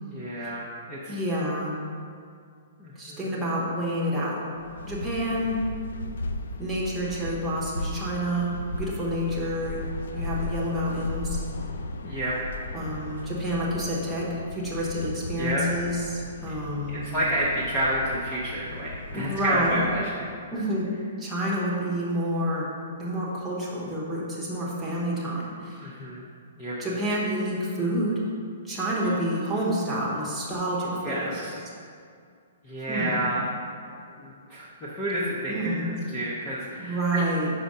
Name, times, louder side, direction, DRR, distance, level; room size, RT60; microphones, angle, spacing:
voice 1, 0.1-1.2 2.8-3.3 12.0-12.3 15.4-15.6 16.9-20.3 25.8-26.2 26.6-26.8 31.0-31.6 32.6-33.4 34.2-37.2, right 1 dB, 15° left, -7 dB, 0.6 m, -30 dB
voice 2, 1.1-1.8 3.0-4.5 4.8-5.6 6.6-9.8 10.1-11.4 12.7-17.0 19.1-19.9 20.5-20.9 21.2-22.7 23.0-25.9 26.8-28.2 28.6-31.4 32.9-33.2 35.5-35.9 36.8-37.5, equal, ahead, -7 dB, 1.0 m, -28 dB
sound 1, 4.6-20.3, left 2 dB, 75° left, 0.4 m, -36 dB
5.6 x 5.1 x 5.3 m, 2.3 s
hypercardioid pair, 175°, 0 cm